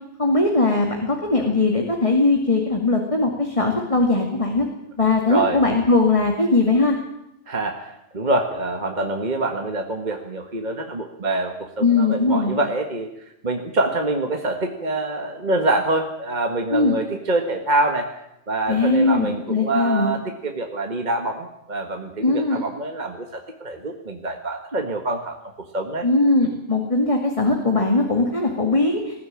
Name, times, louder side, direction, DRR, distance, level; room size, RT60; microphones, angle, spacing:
voice 1, 0.2-4.7 5.0-7.0 11.8-12.6 16.7-17.0 18.7-20.1 22.2-22.6 26.0-29.0, left 3 dB, 25° left, 1 dB, 2.4 m, -20 dB
voice 2, 5.3-5.6 7.5-13.1 13.4-18.1 18.5-25.4 25.7-26.1, right 2 dB, 35° right, 3 dB, 1.8 m, -25 dB
20.0 x 15.5 x 8.9 m, 0.85 s
omnidirectional pair, 1.4 m